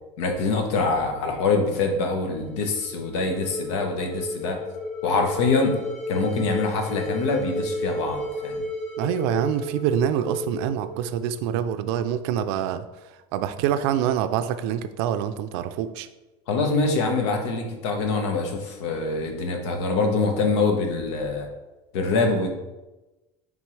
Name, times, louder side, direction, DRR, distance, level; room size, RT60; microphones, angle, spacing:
voice 1, 0.2-4.6 5.0-5.8 6.1-8.6 16.5-21.5 21.9-22.5, left 3 dB, 80° left, 3 dB, 1.3 m, -24 dB
sound 1, 2.3-11.5, equal, 5° left, 0.7 m, -33 dB
voice 2, 9.0-12.8 13.3-16.1, right 9 dB, 65° right, 10 dB, 0.4 m, -25 dB
9.4 x 3.7 x 3.3 m, 1.1 s
cardioid pair, 165°, 14 cm